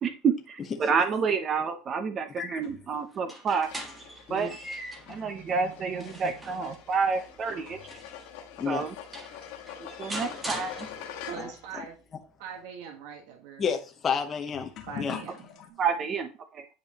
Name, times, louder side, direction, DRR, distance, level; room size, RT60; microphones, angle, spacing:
voice 1, 0.0-3.7 4.3-4.5 5.1-7.8 8.7-8.9 9.8-10.9 15.8-16.7, right 5 dB, 30° right, 0.7 m, -29 dB
sound 1, 1.9-3.0 3.9-4.0 4.7-8.1 8.4-8.5 9.3-9.5 10.3-10.4 10.8-15.7, left 10 dB, 45° left, 1.3 m, -48 dB
sound 2, 3.1-5.2 5.7-8.3 8.8-8.9 9.1-11.3, right 1 dB, 10° right, 1.4 m, -41 dB
sound 3, 3.6-11.7, left 9 dB, 75° left, 1.4 m, -45 dB
voice 2, 8.6-8.9 11.4-11.5 13.6-14.7 15.0-15.2, left 6 dB, 25° left, 0.9 m, -30 dB
voice 3, 11.3-12.0 12.4-13.6 14.9-15.8, right 7 dB, 70° right, 1.5 m, -42 dB
9.0 x 5.3 x 2.9 m
supercardioid pair, 145°, 0 cm